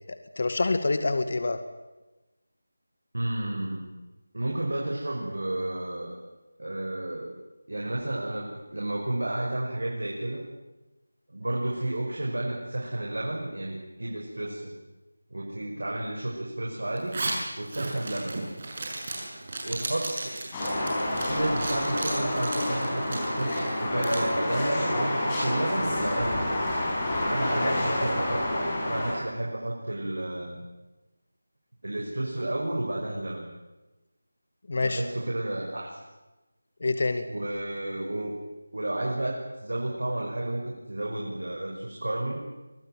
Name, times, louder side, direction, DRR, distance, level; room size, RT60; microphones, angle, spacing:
voice 1, 0.4-1.6 27.6-27.7 34.7-35.0 36.8-37.2, left 3 dB, 50° left, 8 dB, 2.1 m, -26 dB
voice 2, 3.1-3.9 4.3-6.2 6.6-7.3 7.7-10.4 11.3-14.7 15.3-17.2 17.6-18.5 19.6-20.4 21.0-26.8 27.3-28.5 28.8-30.6 31.8-33.5 34.8-36.0 37.3-38.4 38.7-42.4, right 1 dB, 85° right, -1 dB, 6.1 m, -32 dB
Zipper (clothing), 17.0-24.3, right 2 dB, 40° right, 6.7 m, -35 dB
sound 1, 20.5-29.1, left 1 dB, 15° left, 7.2 m, -28 dB
24.5 x 19.0 x 9.3 m, 1.1 s
figure-of-eight pair, 175°, 0 cm